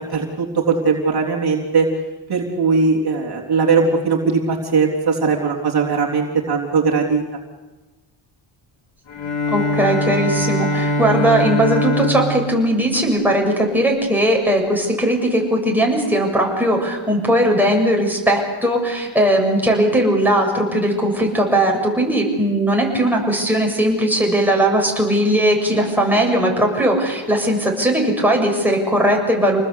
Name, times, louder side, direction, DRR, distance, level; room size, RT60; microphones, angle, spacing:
voice 1, 0.1-1.9 2.3-7.2, right 4 dB, 55° right, -1 dB, 3.6 m, -19 dB
Bowed string instrument, 9.1-14.0, equal, 70° left, 5.3 m, -23 dB
voice 2, 9.5-29.6, right 1 dB, 5° right, 0 dB, 7.3 m, -18 dB
28.0 x 19.5 x 8.4 m, 1.2 s
cardioid pair, 85°, 47 cm